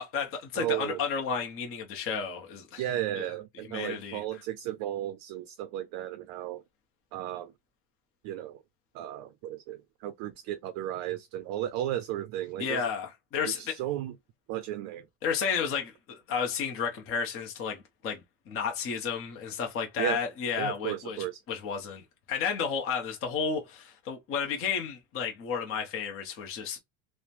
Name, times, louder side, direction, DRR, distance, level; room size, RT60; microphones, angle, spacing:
voice 1, 0.0-2.8 3.2-3.3 3.7-4.2 12.6-13.7 15.2-18.2 18.5-21.2 21.5-26.8, left 6 dB, 30° left, 0.7 m, -32 dB
voice 2, 0.5-1.0 2.8-6.6 7.1-7.5 8.2-8.6 8.9-12.8 13.5-14.1 14.5-15.1 20.0-20.2 20.6-21.4, right 12 dB, 55° right, 0.5 m, -34 dB
3.0 x 2.1 x 2.4 m
cardioid pair, 145°, 43 cm